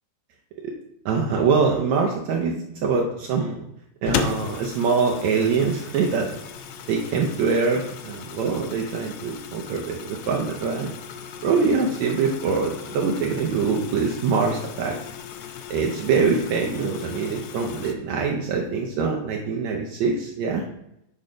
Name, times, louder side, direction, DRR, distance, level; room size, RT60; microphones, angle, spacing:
voice 1, 1.1-3.6 4.0-6.4 6.9-10.9 11.4-15.0 15.7-20.6, right 5 dB, 75° right, 0 dB, 1.8 m, -24 dB
sound 1, 4.1-17.9, left 8 dB, 85° left, 1.6 m, -36 dB
7.7 x 3.9 x 5.0 m, 0.80 s
omnidirectional pair, 3.8 m